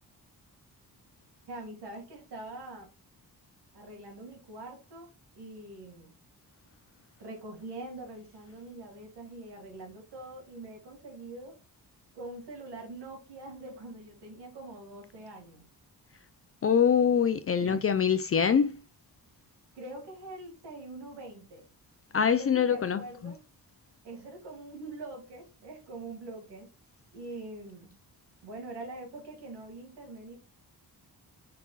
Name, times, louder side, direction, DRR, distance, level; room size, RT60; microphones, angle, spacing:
voice 1, 1.5-2.9 3.7-6.1 7.2-11.6 12.1-15.7 17.6-17.9 19.8-21.7 22.2-23.4 24.0-26.7 27.1-27.9 28.4-30.4, right 2 dB, 85° right, 2.1 m, -44 dB
voice 2, 16.6-18.8 22.1-23.3, left 7 dB, 35° left, 0.4 m, -24 dB
5.4 x 4.1 x 2.3 m
cardioid pair, 90°, 40 cm